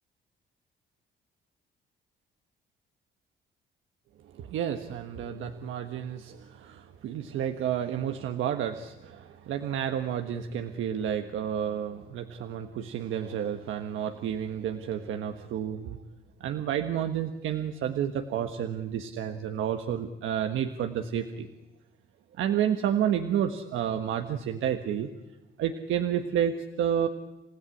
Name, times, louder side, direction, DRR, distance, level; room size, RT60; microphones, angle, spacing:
voice 1, 4.3-16.0 16.4-21.5 22.4-25.1 25.6-27.1, right 9 dB, 80° right, 7 dB, 1.5 m, -30 dB
28.5 x 16.0 x 10.0 m, 1.1 s
cardioid pair, 90°, 20 cm